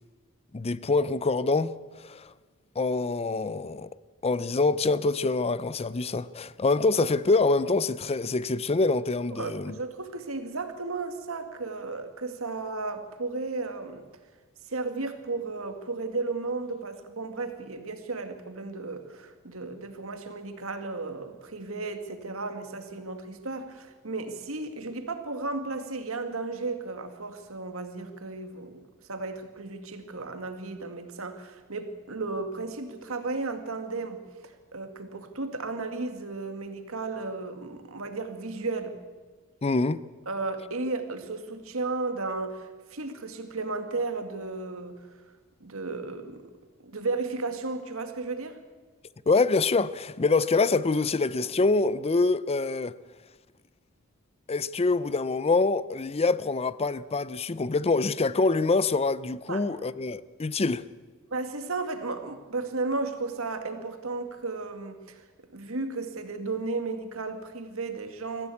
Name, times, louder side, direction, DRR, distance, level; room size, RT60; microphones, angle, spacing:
voice 1, 0.5-2.3 2.8-3.9 4.2-9.8 39.6-40.0 49.3-52.9 54.5-60.8, left 3 dB, 30° left, 0.5 m, -25 dB
voice 2, 9.3-14.1 14.7-28.8 29.1-34.2 34.7-39.0 40.3-45.1 45.6-46.4 46.8-48.6 59.5-59.6 61.3-65.2 65.5-68.5, right 3 dB, 70° right, 2.0 m, -34 dB
22.5 x 14.5 x 8.4 m
head